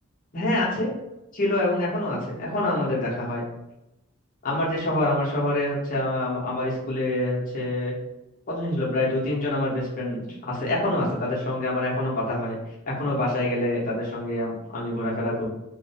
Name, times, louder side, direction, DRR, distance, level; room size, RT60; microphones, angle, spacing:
voice 1, 0.3-0.9 1.3-3.4 4.4-7.9 8.5-12.6 12.9-15.4, left 1 dB, 35° left, -5 dB, 0.7 m, -26 dB
2.4 x 2.0 x 2.6 m, 0.91 s
head